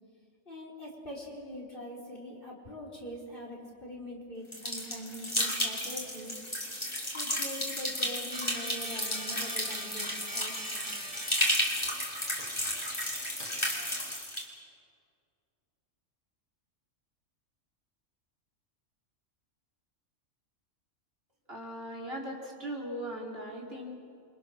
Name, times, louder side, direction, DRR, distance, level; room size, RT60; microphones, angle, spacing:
voice 1, 0.5-6.3 7.1-10.9, left 1 dB, 45° left, -2 dB, 4.7 m, -43 dB
sound 1, 4.5-14.4, equal, 20° left, 4.3 m, -33 dB
sound 2, 8.3-14.2, right 1 dB, 30° right, 1.9 m, -45 dB
voice 2, 21.5-24.0, equal, 50° right, -2 dB, 4.1 m, -39 dB
29.5 x 25.0 x 6.5 m, 2.3 s
omnidirectional pair, 1.3 m